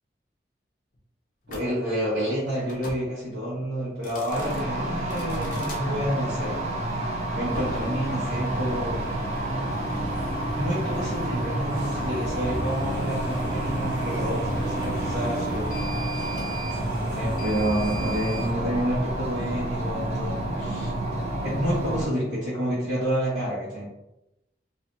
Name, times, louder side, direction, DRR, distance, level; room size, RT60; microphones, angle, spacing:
sound 1, 1.5-1.7 2.6-3.0 3.9-4.6 5.1-5.8 7.4-18.4, right 1 dB, 45° left, 0.5 m, -36 dB
voice 1, 1.5-6.6 7.3-9.0 10.6-15.9 17.0-20.9 21.4-23.9, equal, 80° right, -10 dB, 1.0 m, -29 dB
sound 2, 4.3-22.1, right 1 dB, 35° right, 0.5 m, -29 dB
sound 3, 11.7-18.5, right 1 dB, 60° right, 0.8 m, -39 dB
2.7 x 2.4 x 2.3 m, 0.89 s
head